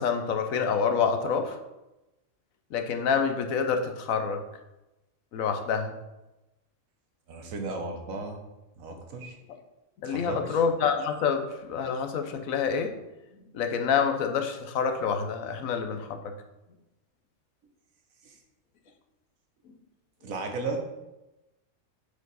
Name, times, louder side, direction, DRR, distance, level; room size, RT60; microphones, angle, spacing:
voice 1, 0.0-1.6 2.7-4.4 5.3-5.9 10.0-13.0 13.5-16.3, left 6 dB, 90° left, 5 dB, 1.2 m, -27 dB
voice 2, 7.3-8.4 8.8-9.4 10.0-10.6 18.2-18.3 20.2-20.9, right 3 dB, 90° right, 4 dB, 1.4 m, -35 dB
7.3 x 4.5 x 4.1 m, 0.99 s
omnidirectional pair, 1.4 m